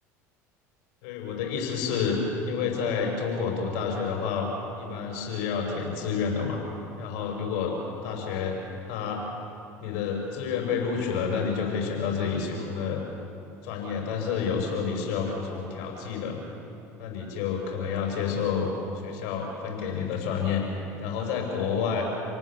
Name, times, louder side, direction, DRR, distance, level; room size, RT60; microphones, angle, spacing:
voice 1, 1.0-2.2 2.5-4.5 4.8-6.6 7.0-7.7 8.0-8.6 8.8-9.2 9.8-13.0 13.6-16.4 17.0-18.7 19.0-22.0, left 6 dB, 70° left, 1 dB, 6.4 m, -29 dB
28.5 x 18.0 x 7.7 m, 2.6 s
hypercardioid pair, 80°, 9 cm